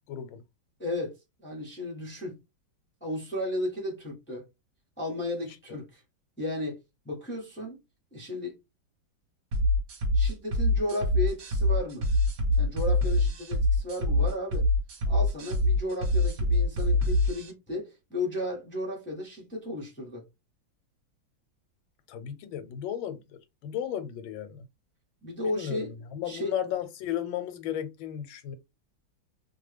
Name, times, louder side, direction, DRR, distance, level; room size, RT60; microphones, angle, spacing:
voice 1, 0.1-0.4 22.1-24.7 25.5-28.5, left 10 dB, 85° left, 1.4 m, -34 dB
voice 2, 0.8-2.4 3.0-4.4 5.0-6.0 6.4-6.8 7.0-7.8 8.1-8.6 10.1-12.1 12.6-14.7 15.1-20.2 25.2-25.9 26.3-26.5, left 1 dB, 15° left, 0.4 m, -34 dB
sound 1, 9.5-17.5, left 1 dB, 55° right, 1.2 m, -25 dB
3.0 x 2.2 x 3.2 m
omnidirectional pair, 2.1 m